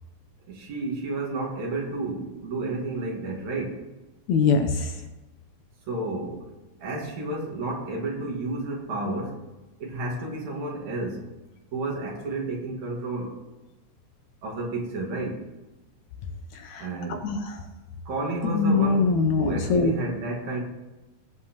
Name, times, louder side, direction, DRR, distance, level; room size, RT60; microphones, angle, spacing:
voice 1, 0.5-3.8 5.9-6.5 6.8-9.4 9.8-11.3 11.7-13.4 14.4-15.4 16.8-17.2 18.1-20.6, right 2 dB, 60° right, 0 dB, 3.0 m, -31 dB
voice 2, 4.3-4.9 16.5-16.9 17.2-17.6 18.4-19.9, left 4 dB, 75° left, 5 dB, 1.8 m, -23 dB
19.0 x 7.6 x 3.0 m, 1.1 s
omnidirectional pair, 3.7 m